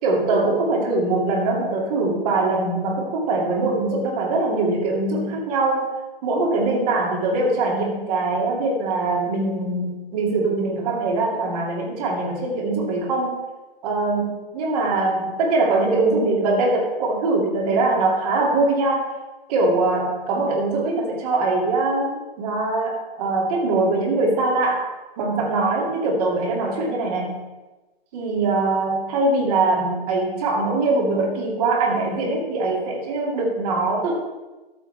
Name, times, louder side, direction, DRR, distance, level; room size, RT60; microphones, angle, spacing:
voice 1, 0.0-13.4 13.8-19.1 19.5-24.9 25.2-27.4 28.1-34.2, right 3 dB, 40° right, -1 dB, 2.5 m, -22 dB
12.5 x 7.1 x 3.4 m, 1.1 s
figure-of-eight pair, 120°, 30 cm